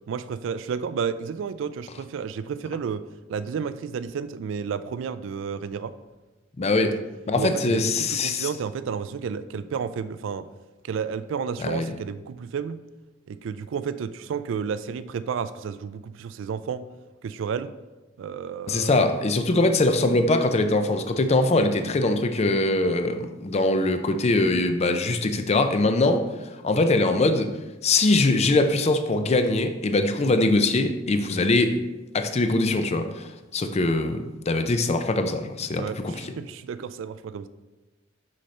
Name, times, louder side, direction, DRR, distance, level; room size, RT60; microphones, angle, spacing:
voice 1, 0.1-3.0 3.3-5.9 7.3-10.5 10.8-12.8 13.3-16.9 17.2-17.7 18.2-19.2 35.8-37.5, right 6 dB, 65° right, 14 dB, 0.3 m, -31 dB
voice 2, 6.6-7.0 7.3-8.5 11.6-11.9 18.7-26.2 26.6-27.5 27.8-31.8 32.1-36.2, left 2 dB, 30° left, 8 dB, 0.4 m, -22 dB
6.4 x 5.5 x 3.2 m, 1.1 s
head